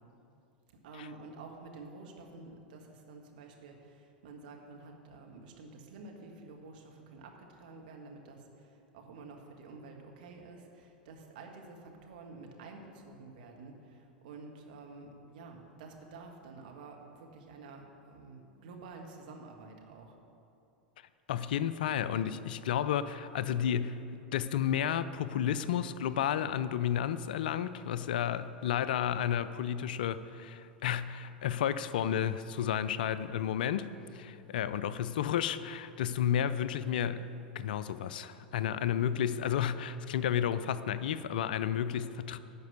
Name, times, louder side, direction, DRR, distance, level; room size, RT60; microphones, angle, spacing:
voice 1, 0.8-20.2, right 3 dB, 65° right, 2 dB, 1.7 m, -50 dB
voice 2, 21.3-24.0 24.3-37.3 37.5-42.4, left 9 dB, 65° left, 14 dB, 0.4 m, -32 dB
11.5 x 5.3 x 8.1 m, 2.7 s
figure-of-eight pair, 90°, 5 cm